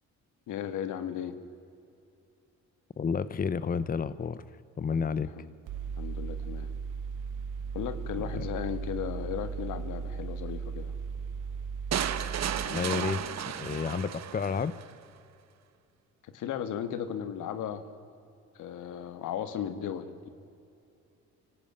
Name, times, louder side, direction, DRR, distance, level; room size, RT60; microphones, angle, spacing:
voice 1, 0.5-1.4 4.9-5.5 6.0-6.7 7.7-10.9 16.2-17.8 18.5-20.3, left 9 dB, 85° left, 11 dB, 1.7 m, -36 dB
voice 2, 3.0-4.4 4.8-5.3 8.4-8.5 12.6-14.7, left 6 dB, 30° left, 16 dB, 0.8 m, -31 dB
Mechanical fan, 5.7-12.6, right 5 dB, 85° right, 1.7 m, -36 dB
sound 1, 11.9-14.9, right 9 dB, 60° right, 1.2 m, -33 dB
24.5 x 17.0 x 8.8 m, 2.7 s
cardioid pair, 90°, 30 cm